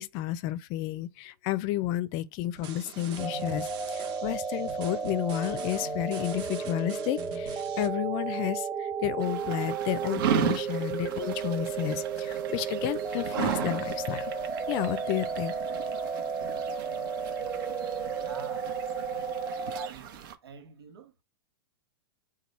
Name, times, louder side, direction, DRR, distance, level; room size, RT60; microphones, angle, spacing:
voice 1, 0.0-14.3 14.7-15.5, left 14 dB, 40° left, 0.5 m, -31 dB
sound 1, 2.5-7.9, right 6 dB, 35° right, 1.0 m, -44 dB
sound 2, 3.2-19.9, right 5 dB, 15° right, 0.4 m, -33 dB
sound 3, 9.2-20.3, right 8 dB, 60° right, 0.9 m, -36 dB
voice 2, 18.2-18.7 19.6-20.1 20.4-21.1, right 6 dB, 90° right, 1.1 m, -46 dB
4.4 x 2.3 x 4.2 m
hypercardioid pair, 135°, 13 cm